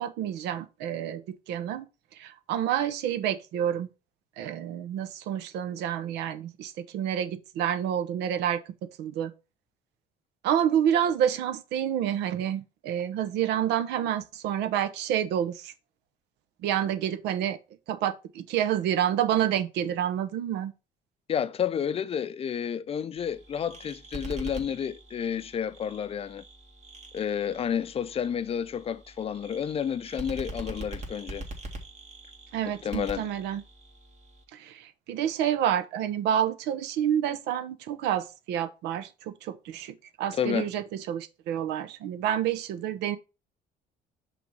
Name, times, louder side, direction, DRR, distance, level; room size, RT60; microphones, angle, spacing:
voice 1, 0.0-1.9 2.1-3.9 4.4-9.3 10.4-15.7 16.6-17.6 17.9-20.7 32.5-33.6 34.5-43.2, right 10 dB, 85° right, 0.8 m, -28 dB
voice 2, 21.3-26.4 27.1-31.4 32.8-33.3 40.3-40.7, left 8 dB, 35° left, 0.5 m, -30 dB
sound 1, 23.2-34.4, right 1 dB, 40° right, 1.8 m, -43 dB
6.0 x 3.5 x 5.3 m
cardioid pair, 110°, 17 cm